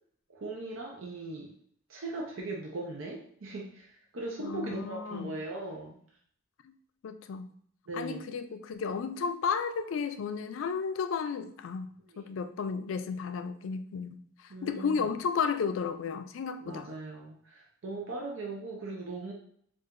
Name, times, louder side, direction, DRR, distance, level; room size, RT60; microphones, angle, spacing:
voice 1, 0.3-1.5 1.9-6.0 7.9-8.2 12.1-12.3 14.5-15.1 16.6-19.3, right 2 dB, 75° right, -1 dB, 0.6 m, -39 dB
voice 2, 4.4-5.3 6.6-6.7 7.0-7.5 7.9-11.9 12.2-16.9, left 6 dB, 75° left, 9 dB, 0.3 m, -33 dB
4.5 x 2.4 x 2.4 m, 0.63 s
head